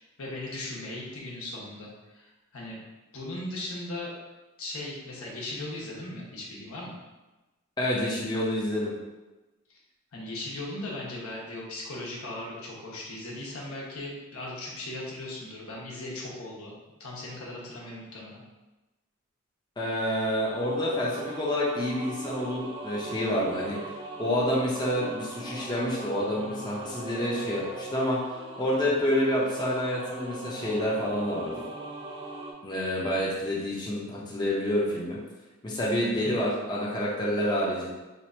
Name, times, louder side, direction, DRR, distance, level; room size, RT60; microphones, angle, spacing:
voice 1, 0.0-2.8 3.1-4.1 4.6-6.9 9.7-9.8 10.1-16.7 17.0-18.4 36.1-36.3, left 2 dB, 80° left, -4 dB, 1.0 m, -38 dB
voice 2, 7.8-8.9 19.8-23.8 24.2-28.2 28.6-31.6 32.6-35.2 35.6-37.9, equal, 20° left, -5 dB, 0.6 m, -28 dB
sound 1, 20.3-32.5, right 2 dB, 25° right, 0.4 m, -40 dB
3.0 x 2.5 x 4.2 m, 1.1 s
head